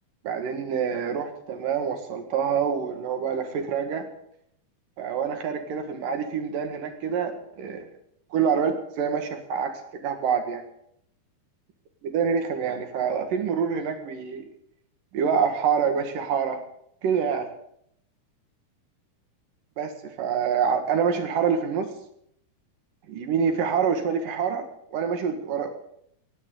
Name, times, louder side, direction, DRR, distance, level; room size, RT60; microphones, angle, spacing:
voice 1, 0.2-4.1 5.0-7.9 8.3-10.6 12.0-14.4 15.1-16.6 17.0-17.5 19.8-21.9 23.1-24.6 24.9-25.7, right 6 dB, 65° right, 6 dB, 3.3 m, -26 dB
18.5 x 17.0 x 3.9 m, 0.72 s
omnidirectional pair, 4.4 m